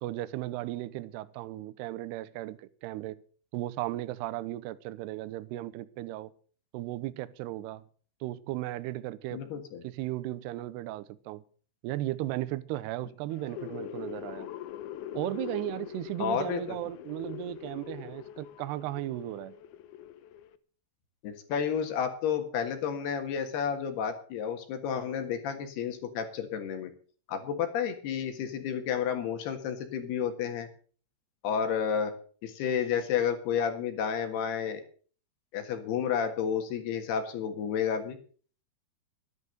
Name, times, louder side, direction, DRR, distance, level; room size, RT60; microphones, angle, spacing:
voice 1, 0.0-3.2 3.5-6.3 6.7-7.8 8.2-9.4 9.8-11.4 11.8-14.5 15.1-19.5, right 15 dB, 80° right, 2.5 m, -36 dB
voice 2, 9.3-9.8 16.2-16.8 21.2-26.9 27.3-30.7 31.4-32.1 32.4-34.8 35.5-38.2, left 7 dB, 65° left, 3.4 m, -31 dB
sound 1, 13.3-20.6, left 11 dB, 85° left, 2.1 m, -42 dB
13.0 x 10.5 x 6.6 m
omnidirectional pair, 5.4 m